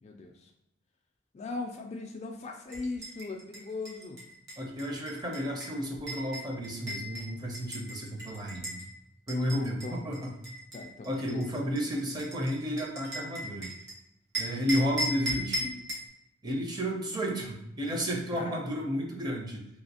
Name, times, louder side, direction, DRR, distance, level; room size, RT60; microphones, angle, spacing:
voice 1, 0.0-0.5 1.3-4.2 9.4-10.1 10.7-11.5 18.3-18.6, left 3 dB, 35° left, 3 dB, 0.3 m, -39 dB
sound 1, 2.7-8.9 9.3-13.9 14.3-16.1, equal, 55° right, 1.1 m, -38 dB
voice 2, 4.6-8.8 9.3-10.3 11.0-13.7 14.4-15.8 16.4-19.6, equal, 20° right, 1 dB, 0.5 m, -32 dB
3.1 x 2.7 x 2.8 m, 0.84 s
head